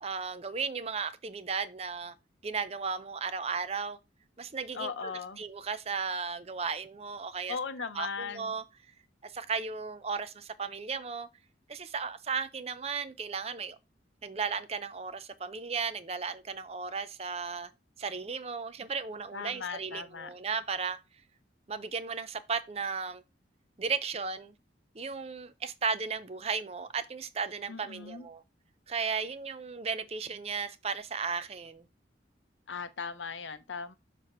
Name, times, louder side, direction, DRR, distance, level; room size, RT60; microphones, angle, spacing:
voice 1, 0.0-2.1 2.4-4.0 4.4-7.6 7.9-8.6 9.2-11.3 11.7-13.8 14.2-17.7 18.0-21.0 21.7-23.2 23.8-24.5 24.9-28.4 28.9-31.8, right 5 dB, 35° right, 0.5 m, -35 dB
voice 2, 4.7-5.4 7.5-8.5 19.3-20.3 27.7-28.3 32.7-33.9, left 5 dB, 85° left, 0.7 m, -38 dB
6.7 x 3.5 x 4.3 m
head